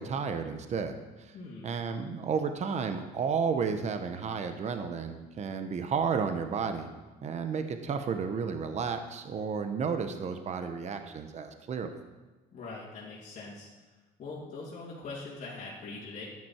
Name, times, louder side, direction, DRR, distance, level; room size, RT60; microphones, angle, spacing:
voice 1, 0.0-1.3 1.6-6.9 7.2-11.9, right 6 dB, 45° right, 7 dB, 1.0 m, -32 dB
voice 2, 1.3-1.7 12.5-13.7 14.2-16.2, left 3 dB, 50° left, -6 dB, 2.7 m, -42 dB
11.5 x 9.6 x 4.5 m, 1.2 s
cardioid pair, 110°, 17 cm